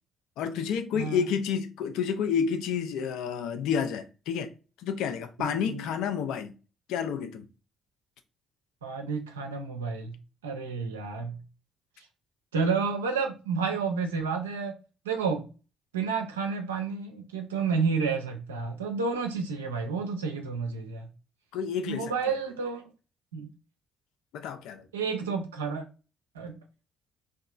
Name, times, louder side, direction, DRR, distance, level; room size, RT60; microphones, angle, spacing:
voice 1, 0.4-4.5 4.8-6.5 6.9-7.5 21.5-22.1 24.3-24.9, left 7 dB, 65° left, 0.4 m, -30 dB
voice 2, 0.9-1.3 5.4-5.8 8.8-10.2 10.4-11.4 12.5-14.7 15.0-15.5 15.9-21.1 21.9-22.8 23.3-23.5 24.9-25.8 26.3-26.6, right 5 dB, 80° right, 0.4 m, -30 dB
2.7 x 2.3 x 2.3 m
figure-of-eight pair, 45°, 0 cm